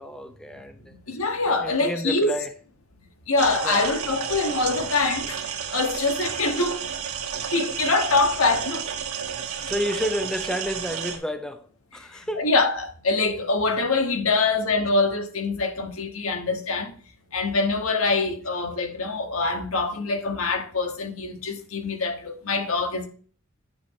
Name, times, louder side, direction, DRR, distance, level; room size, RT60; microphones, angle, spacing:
voice 1, 0.0-0.9 1.6-2.5 3.6-3.8 9.7-11.6 11.9-12.5, equal, 5° left, 0.6 m, -30 dB
voice 2, 1.1-2.3 3.3-5.4 5.7-6.8 7.5-8.9 12.4-16.9 17.3-23.1, left 3 dB, 75° left, 1.4 m, -24 dB
sound 1, 3.4-11.2, right 7 dB, 80° right, 1.5 m, -31 dB
8.8 x 7.4 x 3.1 m
head